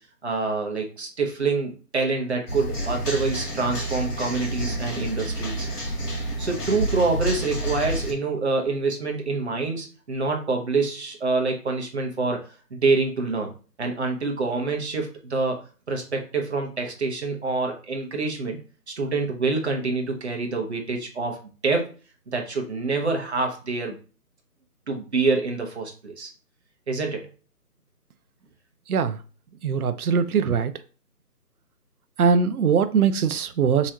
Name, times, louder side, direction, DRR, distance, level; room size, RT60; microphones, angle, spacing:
voice 1, 0.2-5.7 6.4-13.5 13.8-15.6 15.9-18.6 18.9-21.4 21.6-21.9 22.3-24.0 24.9-26.3 26.9-27.3, right 3 dB, 45° right, 0.9 m, -26 dB
sound 1, 2.5-8.1, right 1 dB, 70° left, 1.6 m, -29 dB
voice 2, 28.9-29.2 29.6-30.7 32.2-33.9, right 6 dB, 65° right, 0.5 m, -21 dB
3.7 x 3.0 x 2.8 m
figure-of-eight pair, 165°, 48 cm